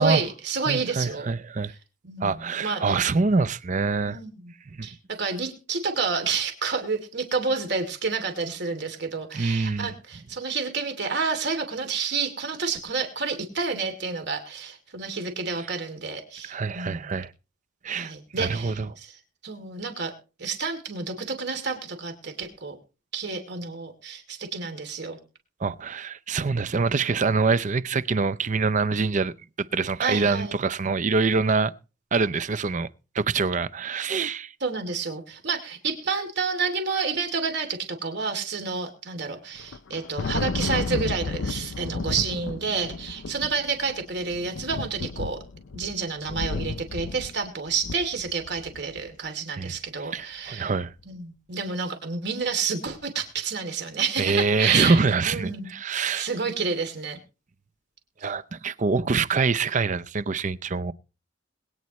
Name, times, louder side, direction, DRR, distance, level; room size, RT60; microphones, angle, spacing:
voice 1, 0.0-1.3 2.0-3.0 4.0-4.5 4.8-17.2 17.9-19.2 19.4-20.1 20.4-22.8 23.1-25.2 30.0-30.6 34.6-45.4 45.7-50.7 51.1-55.0 55.3-55.7 56.1-57.2, right 5 dB, 60° right, 2.8 m, -29 dB
voice 2, 0.6-1.7 2.2-4.2 4.7-4.9 9.3-9.9 16.5-17.3 17.8-18.9 25.6-29.3 29.7-31.7 32.1-32.9 33.1-34.5 49.6-49.8 50.1-50.9 54.2-56.3 58.2-60.9, right 4 dB, 40° right, 0.6 m, -25 dB
Thunder, 39.6-49.0, left 4 dB, 85° left, 0.6 m, -33 dB
21.5 x 9.5 x 3.1 m
head